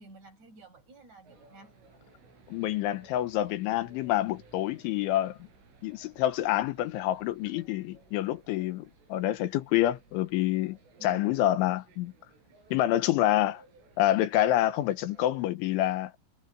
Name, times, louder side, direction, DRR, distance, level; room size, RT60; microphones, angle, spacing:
voice 1, 0.0-1.7 11.0-11.5 12.9-13.4, right 2 dB, 35° right, 8.7 m, -52 dB
sound 1, 1.2-15.5, right 3 dB, 70° right, 10.5 m, -58 dB
voice 2, 2.5-5.4 5.8-12.1 12.7-13.6 14.0-16.2, left 13 dB, 75° left, 3.4 m, -27 dB
omnidirectional pair, 6.0 m